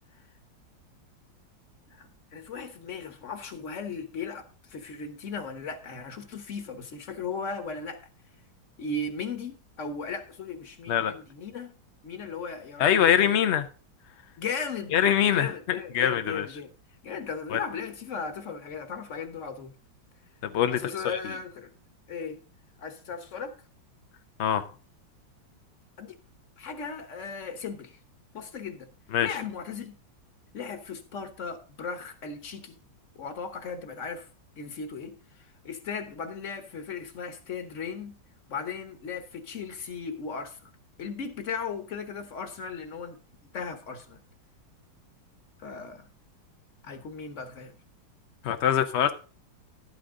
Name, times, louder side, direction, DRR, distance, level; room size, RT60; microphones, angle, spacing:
voice 1, 1.9-8.0 8.8-11.7 12.0-13.4 14.4-15.0 15.3-16.7 17.0-19.7 20.7-21.7 22.1-22.4 22.8-23.5 26.0-26.1 26.6-28.0 28.3-28.9 29.2-29.9 30.5-32.8 33.2-34.3 34.6-38.2 38.5-40.7 41.0-43.2 43.5-44.2 45.6-46.1 46.8-47.7, left 5 dB, 45° left, 1.3 m, -37 dB
voice 2, 12.8-13.6 14.9-15.5 15.9-16.5 17.5-17.6 20.4-21.3 24.4-24.7 29.1-29.3 48.4-49.1, left 9 dB, 80° left, 0.6 m, -23 dB
11.5 x 8.8 x 3.7 m
omnidirectional pair, 2.1 m